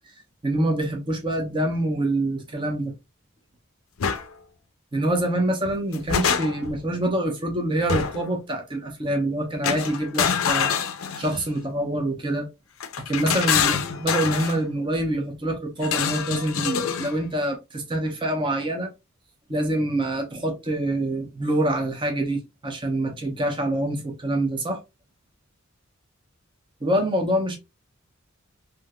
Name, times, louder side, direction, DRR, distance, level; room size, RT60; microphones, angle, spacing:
voice 1, 0.4-2.9 4.9-10.7 11.2-12.5 13.1-18.9 19.5-24.8 26.8-27.6, right 1 dB, 25° right, 0.8 m, -26 dB
sound 1, 4.0-4.2 5.7-6.8 7.9-8.3 9.6-11.5 12.8-14.6 15.8-17.2, left 7 dB, 80° left, 0.5 m, -25 dB
3.5 x 2.7 x 2.3 m
head